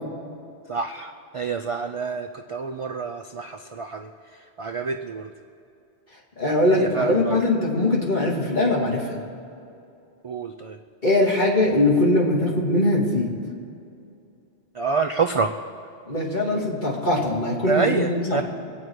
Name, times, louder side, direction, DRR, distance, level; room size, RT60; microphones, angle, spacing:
voice 1, 0.7-4.1 4.6-5.3 6.7-7.4 10.2-10.8 14.8-15.5 17.7-18.4, right 5 dB, 45° right, 5 dB, 0.4 m, -27 dB
voice 2, 6.4-9.2 11.0-13.3 16.1-18.4, left 2 dB, 40° left, -4 dB, 2.8 m, -21 dB
24.0 x 9.1 x 4.7 m, 2.7 s
omnidirectional pair, 1.2 m